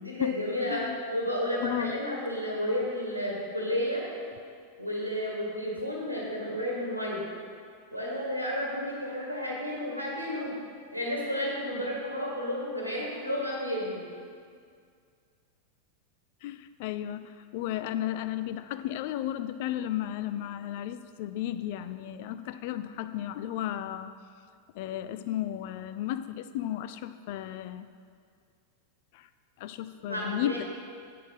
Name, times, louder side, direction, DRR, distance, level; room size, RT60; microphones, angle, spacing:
voice 1, 0.0-4.1 4.8-7.2 7.9-10.5 10.9-14.1 30.1-30.6, equal, 90° left, -3 dB, 2.2 m, -32 dB
voice 2, 1.6-1.9 16.4-24.1 24.8-27.9 29.1-29.2 29.6-30.6, left 12 dB, 50° left, 11 dB, 0.4 m, -34 dB
8.5 x 7.4 x 5.6 m, 2.2 s
figure-of-eight pair, 90°, 0 cm